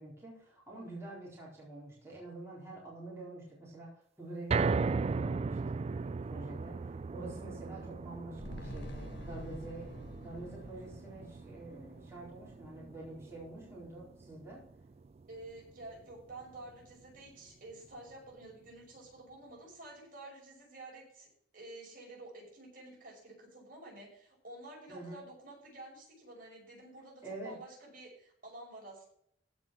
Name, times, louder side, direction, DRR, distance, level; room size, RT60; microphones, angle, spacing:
voice 1, 0.0-14.6 24.9-25.2 27.2-27.6, right 2 dB, 15° right, -6 dB, 4.1 m, -47 dB
sound 1, 4.5-16.7 17.1-17.2 17.7-17.8, right 4 dB, 35° right, 0.3 m, -38 dB
sound 2, 8.3-12.9 13.2-13.3, equal, 65° left, 1.9 m, -48 dB
voice 2, 15.3-21.3 21.5-29.1, right 2 dB, 50° right, -1 dB, 6.1 m, -50 dB
15.5 x 5.5 x 6.1 m, 0.66 s
head